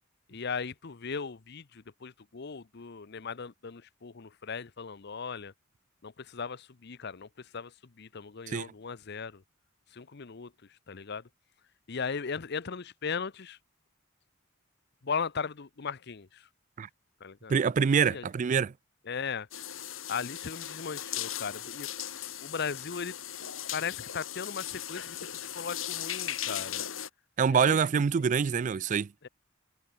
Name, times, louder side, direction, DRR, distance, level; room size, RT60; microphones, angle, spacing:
voice 1, 0.3-5.5 6.0-9.4 9.9-10.5 10.9-11.2 11.9-13.6 15.0-16.5 17.2-17.5 18.0-18.3 19.1-19.5 20.1-21.9 22.4-23.1 23.7-26.8 27.5-28.1 29.2-29.3, left 5 dB, 55° left, 0.7 m, -37 dB
voice 2, 17.5-18.7 27.4-29.1, right 6 dB, 40° right, 0.3 m, -25 dB
sound 1, 19.5-27.1, left 11 dB, 85° left, 3.2 m, -38 dB
head